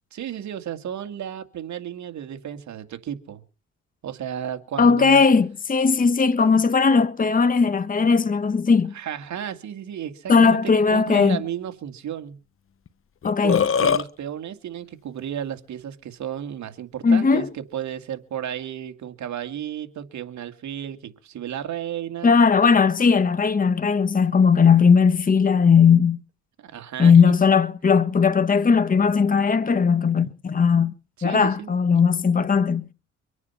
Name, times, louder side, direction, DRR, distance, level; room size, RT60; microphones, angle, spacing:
voice 1, 0.1-3.4 4.0-5.2 8.9-12.4 13.4-22.4 26.6-27.3 31.2-31.7, right 9 dB, 70° right, 2.3 m, -33 dB
voice 2, 4.8-8.9 10.3-11.4 13.2-13.6 17.0-17.5 22.2-26.2 27.0-30.9 31.2-32.8, left 5 dB, 30° left, 1.4 m, -18 dB
Burping eructation, 12.9-13.0 13.2-14.0, left 7 dB, 45° left, 1.1 m, -21 dB
24.5 x 9.5 x 5.7 m
cardioid pair, 90°, 30 cm